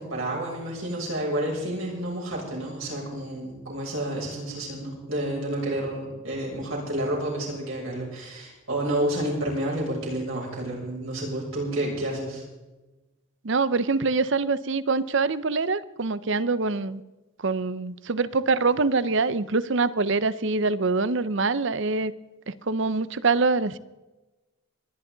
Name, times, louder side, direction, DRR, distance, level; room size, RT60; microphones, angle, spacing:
voice 1, 0.0-12.4, right 1 dB, 75° right, -3 dB, 7.1 m, -30 dB
voice 2, 13.4-17.0 17.4-22.1 22.5-23.8, right 3 dB, 60° right, 16 dB, 0.7 m, -24 dB
26.0 x 11.0 x 4.0 m, 1.1 s
head